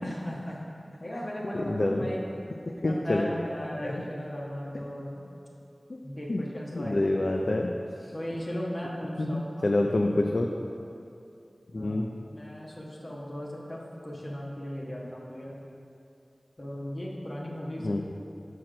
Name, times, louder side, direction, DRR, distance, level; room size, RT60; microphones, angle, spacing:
voice 1, 0.0-0.6 1.0-2.2 2.8-5.2 6.0-7.0 8.1-10.1 11.7-11.9 12.3-15.6 16.6-18.0, equal, 50° left, -4 dB, 1.2 m, -37 dB
voice 2, 1.7-2.1 2.7-3.2 3.8-4.0 5.9-6.0 6.3-6.4 6.7-7.7 8.0-8.1 9.2-10.5 11.7-12.1 17.8-18.0, left 2 dB, 65° left, 1 dB, 0.4 m, -27 dB
5.9 x 4.6 x 6.1 m, 2.6 s
wide cardioid pair, 50°, 0 cm